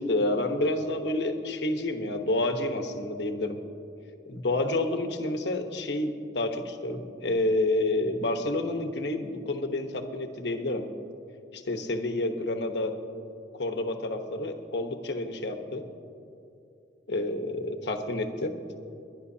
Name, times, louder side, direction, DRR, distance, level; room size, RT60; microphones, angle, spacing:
voice 1, 0.0-3.6 4.3-10.9 11.5-12.9 13.5-15.8 17.1-18.5, left 2 dB, 65° left, 6 dB, 1.1 m, -29 dB
29.5 x 11.0 x 2.8 m, 2.7 s
head